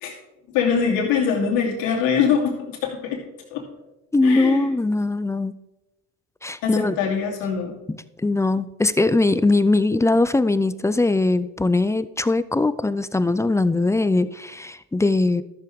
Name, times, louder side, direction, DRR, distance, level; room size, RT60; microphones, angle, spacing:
voice 1, 0.5-3.2 3.5-3.6 4.2-4.7 6.6-7.7, left 6 dB, 75° left, -1 dB, 2.7 m, -23 dB
voice 2, 4.1-5.6 6.4-7.0 7.9-15.4, left 2 dB, 10° left, 15 dB, 0.3 m, -21 dB
13.0 x 6.7 x 3.6 m, 0.97 s
supercardioid pair, 75°, 35 cm